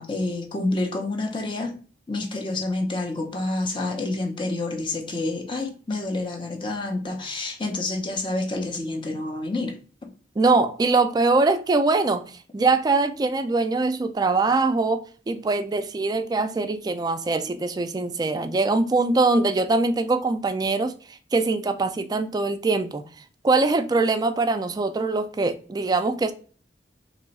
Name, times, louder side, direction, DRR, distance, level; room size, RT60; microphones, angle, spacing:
voice 1, 0.0-1.8 2.1-9.8, left 2 dB, 30° left, 0.6 m, -28 dB
voice 2, 10.4-23.0 23.4-26.3, right 3 dB, 20° right, 0.3 m, -23 dB
3.0 x 2.3 x 3.9 m
head